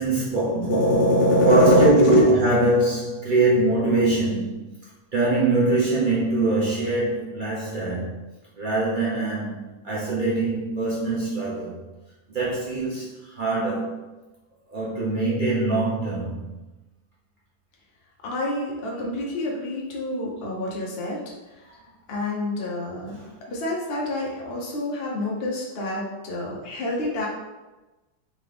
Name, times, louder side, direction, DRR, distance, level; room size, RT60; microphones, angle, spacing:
voice 1, 0.0-1.0 1.4-4.5 5.1-8.1 8.6-11.8 12.3-13.1 13.4-14.1 14.7-16.5 23.1-23.2, right 2 dB, 60° right, -7 dB, 0.5 m, -23 dB
voice 2, 0.6-2.2 18.2-21.2 22.1-23.2 23.5-27.3, left 1 dB, 70° left, -3 dB, 0.5 m, -24 dB
3.8 x 3.1 x 3.3 m, 1.1 s
omnidirectional pair, 2.1 m